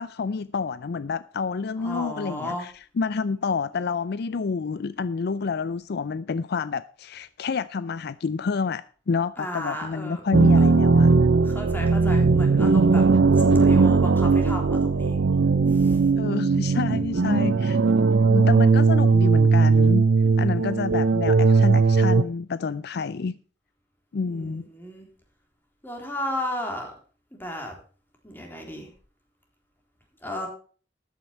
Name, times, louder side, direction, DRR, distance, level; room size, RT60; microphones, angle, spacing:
voice 1, 0.0-11.1 16.2-17.8 18.3-20.1 20.4-23.4 24.1-24.6, left 5 dB, 60° left, 0.4 m, -29 dB
voice 2, 1.8-2.7 9.4-10.2 10.5-10.7 11.4-13.1 13.3-15.2 15.7-16.1 20.2-20.8 24.3-25.1 25.8-26.9 27.3-27.8 28.2-28.9 30.2-30.5, left 1 dB, 10° left, 3.5 m, -34 dB
sound 1, 10.3-22.2, right 4 dB, 75° right, 0.6 m, -18 dB
13.5 x 9.2 x 4.4 m
head